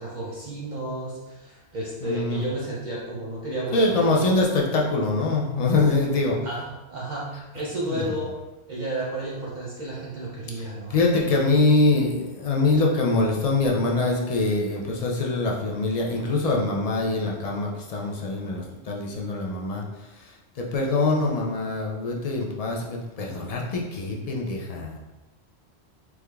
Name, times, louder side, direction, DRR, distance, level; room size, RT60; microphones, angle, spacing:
voice 1, 0.0-4.3 6.4-8.3 8.7-11.0, right 1 dB, 50° right, -5 dB, 0.6 m, -32 dB
voice 2, 2.0-2.4 3.7-6.4 7.9-8.0 10.6-10.7 10.9-19.8 20.2-25.0, left 3 dB, 60° left, -1 dB, 0.4 m, -24 dB
3.5 x 3.1 x 2.2 m, 1.1 s
omnidirectional pair, 1.1 m